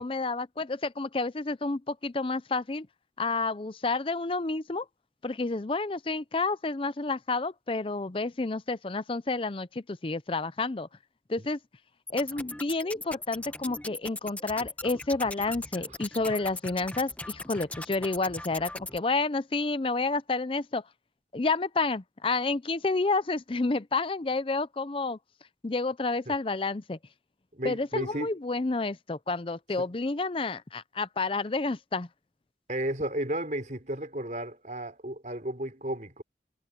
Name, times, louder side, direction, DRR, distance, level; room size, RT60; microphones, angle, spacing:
voice 1, 0.0-2.9 3.2-4.9 5.2-10.9 11.3-11.6 12.1-20.8 21.3-25.2 25.6-27.0 27.6-32.1, left 3 dB, 30° left, 0.5 m, -30 dB
sound 1, 12.1-19.0, left 2 dB, 10° left, 1.1 m, -40 dB
voice 2, 27.5-28.3 29.8-29.9 32.7-36.2, right 1 dB, 45° right, 5.0 m, -33 dB
head